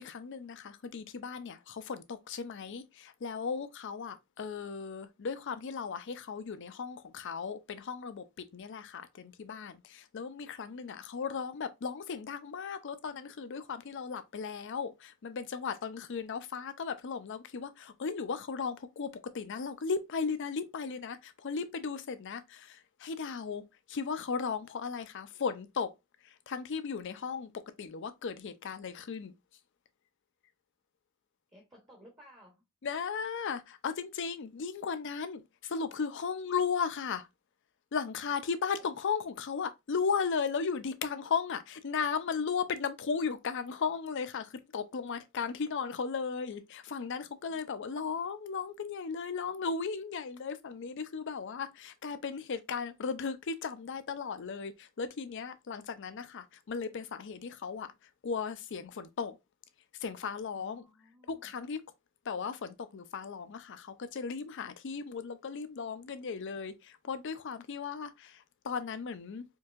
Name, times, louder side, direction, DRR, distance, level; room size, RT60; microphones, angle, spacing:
voice 1, 0.0-25.9 26.2-29.3 32.8-37.3 37.9-57.9 58.2-59.4 60.0-60.9 61.3-61.8 62.3-69.5, left 5 dB, 60° left, 0.5 m, -36 dB
voice 2, 31.5-32.6 38.3-38.9 47.5-48.1 60.5-61.5, equal, 20° right, 0.9 m, -59 dB
4.5 x 2.6 x 2.4 m
head